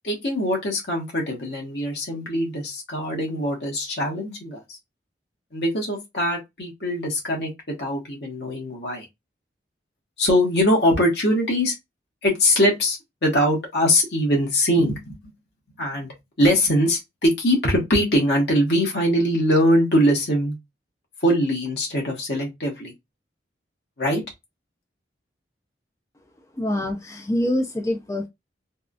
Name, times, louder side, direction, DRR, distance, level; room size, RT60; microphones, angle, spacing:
voice 1, 0.0-4.8 5.5-9.0 10.2-11.8 12.2-15.2 15.8-20.6 21.2-22.9 24.0-24.2, equal, 65° left, 1.4 m, -22 dB
voice 2, 26.5-28.3, left 1 dB, 15° left, 0.4 m, -25 dB
3.4 x 2.3 x 2.4 m
head